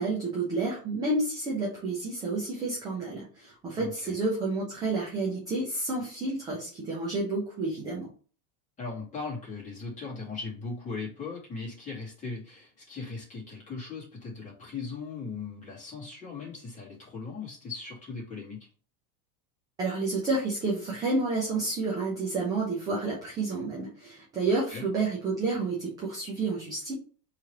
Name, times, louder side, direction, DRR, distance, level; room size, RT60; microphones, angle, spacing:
voice 1, 0.0-8.1 19.8-26.9, right 3 dB, 10° right, -4 dB, 0.3 m, -30 dB
voice 2, 3.8-4.1 8.8-18.7 24.7-24.8, left 4 dB, 15° left, -5 dB, 2.1 m, -38 dB
3.6 x 3.2 x 4.5 m, 0.39 s
supercardioid pair, 160°, 45 cm